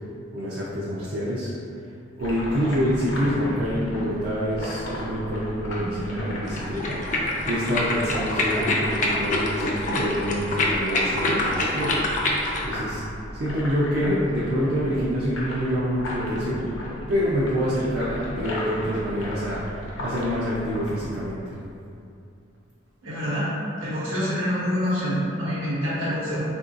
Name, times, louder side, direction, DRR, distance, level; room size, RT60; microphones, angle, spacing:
voice 1, 0.3-1.5 2.2-7.0 7.5-12.0 12.6-13.0 13.3-16.7 17.1-21.5, equal, 50° right, -7 dB, 0.4 m, -26 dB
sound 1, 2.2-21.2, left 1 dB, 70° left, 0.7 m, -35 dB
sound 2, 6.5-12.7, left 2 dB, 40° left, 0.4 m, -25 dB
voice 2, 23.0-23.5 23.8-26.4, equal, 85° right, -10 dB, 1.0 m, -26 dB
3.6 x 2.6 x 2.4 m, 2.6 s
head